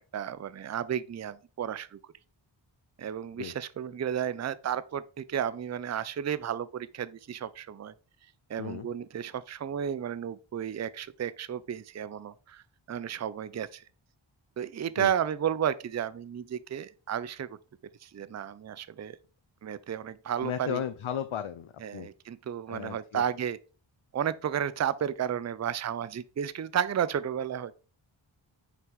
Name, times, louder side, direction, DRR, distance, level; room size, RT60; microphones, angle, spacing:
voice 1, 0.0-2.0 3.0-7.9 8.5-13.8 14.6-17.6 18.0-19.2 19.6-20.8 21.8-23.6 24.1-27.8, right 9 dB, 35° right, 0.4 m, -33 dB
voice 2, 20.4-22.1 22.7-23.2, left 9 dB, 85° left, 0.6 m, -35 dB
5.8 x 4.6 x 3.6 m
wide cardioid pair, 65°, 48 cm